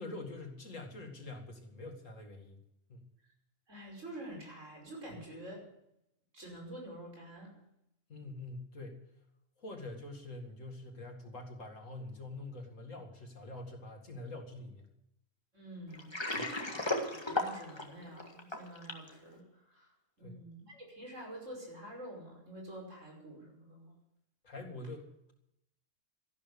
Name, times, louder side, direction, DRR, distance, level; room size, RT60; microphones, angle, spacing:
voice 1, 0.0-2.6 2.9-3.1 8.1-9.0 9.6-14.9 16.3-16.5 20.2-20.4 24.4-25.3, left 2 dB, 85° left, 3 dB, 2.6 m, -45 dB
voice 2, 3.7-5.6 6.3-7.5 15.5-16.1 16.6-19.9 20.2-24.0, right 1 dB, 75° right, 0 dB, 5.7 m, -48 dB
Water, 15.9-19.1, left 2 dB, 20° left, 1.8 m, -35 dB
13.5 x 11.5 x 6.9 m, 0.81 s
omnidirectional pair, 1.3 m